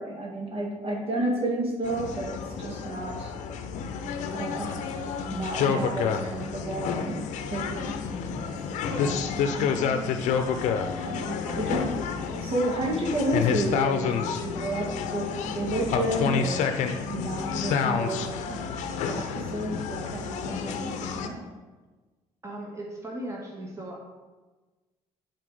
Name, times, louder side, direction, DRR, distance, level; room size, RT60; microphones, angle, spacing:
voice 1, 0.0-3.3 4.3-4.8 5.3-8.6 9.3-10.4 11.0-11.9 12.3-18.8 19.1-21.5, right 1 dB, 50° right, -1 dB, 1.8 m, -31 dB
sound 1, 1.8-21.3, left 6 dB, 75° left, 0.6 m, -29 dB
voice 2, 8.8-9.3 11.4-11.9 21.2-21.5 22.4-24.1, right 1 dB, 25° right, -2 dB, 1.6 m, -38 dB
8.5 x 4.0 x 4.9 m, 1.2 s
supercardioid pair, 75°, 12 cm